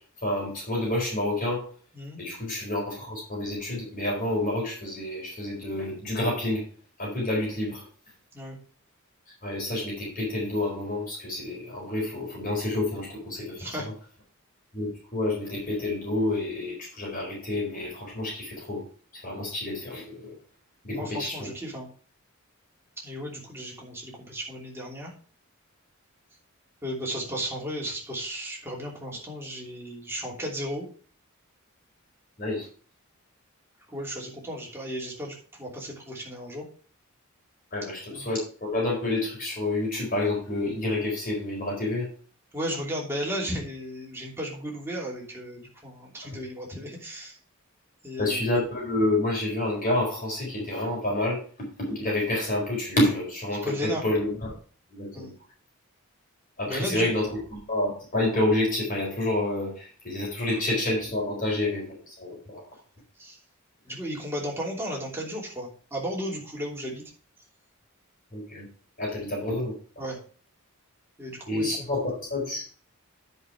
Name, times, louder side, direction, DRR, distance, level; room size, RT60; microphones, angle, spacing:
voice 1, 0.2-1.7 2.2-6.6 7.0-7.8 9.4-13.9 14.7-18.8 19.1-20.3 20.8-21.5 32.4-32.7 37.7-42.1 48.2-54.5 54.9-55.3 56.6-62.6 68.3-68.7 69.0-70.0 71.5-72.6, left 1 dB, 40° left, -2 dB, 4.3 m, -29 dB
voice 2, 20.9-21.9 23.0-25.1 26.8-30.9 33.9-36.7 38.1-38.3 42.5-47.4 48.0-48.5 53.6-54.0 55.1-55.3 56.6-57.0 63.2-63.4 63.8-67.1 70.0-70.2 71.2-71.9, equal, 10° right, -3 dB, 2.8 m, -35 dB
10.0 x 5.5 x 4.7 m, 0.41 s
head